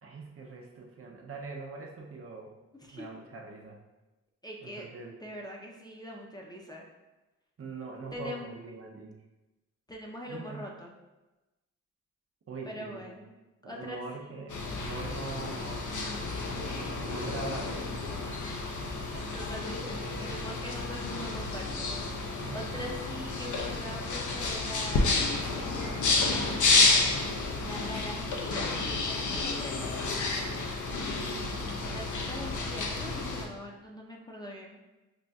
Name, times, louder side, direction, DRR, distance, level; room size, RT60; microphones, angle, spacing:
voice 1, 0.0-2.5 2.9-3.8 4.6-5.1 7.6-9.1 10.3-10.7 12.5-13.1 13.6-15.9 16.7-17.9 22.4-22.9 31.1-31.8, right 3 dB, 45° right, 0 dB, 0.6 m, -42 dB
voice 2, 4.4-4.9 5.2-6.9 8.1-8.5 9.9-10.9 12.6-13.3 13.6-14.4 19.1-21.9 22.2-25.4 26.2-26.8 27.6-29.9 31.9-34.8, equal, 15° left, -1 dB, 0.5 m, -42 dB
sound 1, 14.5-33.5, left 3 dB, 70° left, 0.6 m, -30 dB
5.2 x 2.5 x 2.3 m, 1.1 s
cardioid pair, 70°, 32 cm